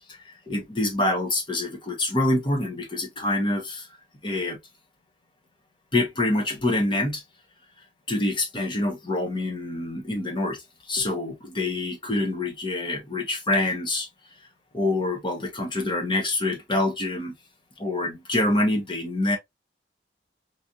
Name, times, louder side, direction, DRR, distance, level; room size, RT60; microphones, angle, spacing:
voice 1, 0.1-3.9 4.2-4.6 5.9-7.2 8.1-14.1 14.7-17.3 17.8-19.4, left 2 dB, 25° left, 0.9 m, -26 dB
3.2 x 2.7 x 2.4 m
head